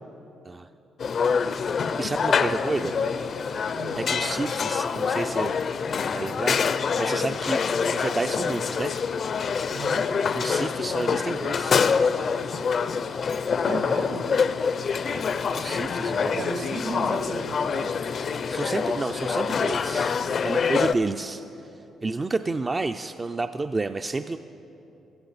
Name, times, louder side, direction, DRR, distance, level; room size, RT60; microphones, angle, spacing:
sound 1, 1.0-20.9, left 6 dB, 50° left, 0.4 m, -26 dB
voice 1, 2.0-3.0 4.0-5.7 6.1-7.6 7.9-8.9 10.3-11.8 15.1-15.3 15.5-16.4 18.5-21.7 22.0-24.4, right 3 dB, 25° right, 8 dB, 0.3 m, -30 dB
voice 2, 2.7-3.1 3.7-4.0 9.7-10.1 13.7-14.3 16.1-17.9, right 3 dB, 70° right, 2 dB, 2.1 m, -35 dB
15.0 x 14.5 x 4.0 m, 2.9 s
cardioid pair, 90°, 0 cm